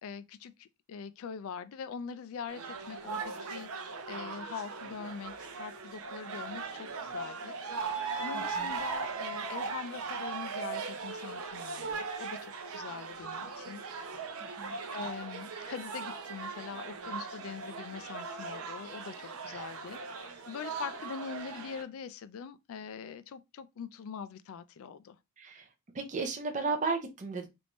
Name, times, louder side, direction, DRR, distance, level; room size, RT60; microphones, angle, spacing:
voice 1, 0.0-14.3 14.9-25.2, left 6 dB, 65° left, 0.3 m, -43 dB
sound 1, 2.5-21.8, right 4 dB, 75° right, 0.7 m, -39 dB
voice 2, 8.3-8.7 14.6-14.8 19.5-19.7 25.4-25.7 25.9-27.5, right 4 dB, 35° right, 0.6 m, -34 dB
3.4 x 2.6 x 2.9 m
head